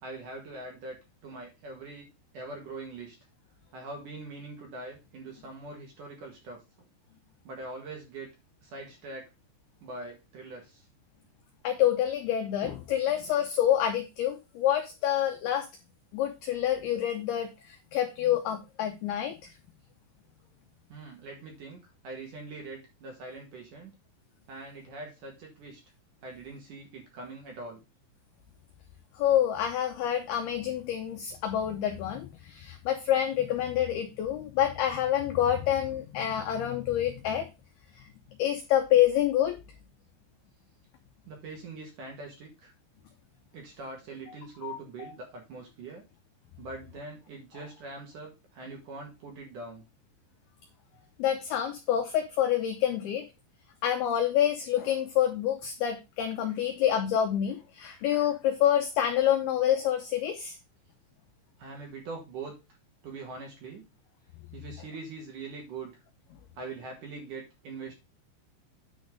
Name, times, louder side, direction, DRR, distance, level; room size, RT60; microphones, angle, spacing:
voice 1, 0.0-2.1 2.3-3.2 3.7-6.9 7.4-8.3 8.6-9.3 9.8-10.9 20.9-23.9 24.5-25.8 26.2-27.8 41.3-42.7 43.5-46.0 46.6-49.8 61.6-62.5 63.0-63.8 64.5-65.9 66.6-67.9, right 3 dB, 55° right, 1 dB, 2.7 m, -43 dB
voice 2, 11.6-15.7 16.1-19.5 29.2-37.5 38.0-38.1 38.4-39.6 44.6-45.1 51.2-53.2 53.8-60.6, left 11 dB, 80° left, 5 dB, 2.3 m, -27 dB
9.8 x 4.3 x 5.1 m, 0.25 s
omnidirectional pair, 5.6 m